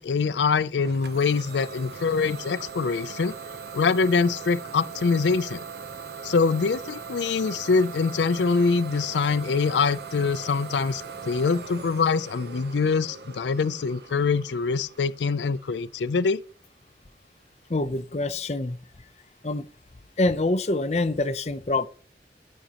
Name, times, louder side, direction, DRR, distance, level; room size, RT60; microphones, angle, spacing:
voice 1, 0.0-3.4 3.7-5.6 6.2-16.4, left 4 dB, 85° left, 0.4 m, -24 dB
Idling / Domestic sounds home sounds, 0.8-16.4, right 5 dB, 70° right, 0.8 m, -40 dB
voice 2, 17.7-18.8 19.4-19.7 20.2-21.9, left 2 dB, 40° left, 0.6 m, -25 dB
14.0 x 5.3 x 2.9 m
head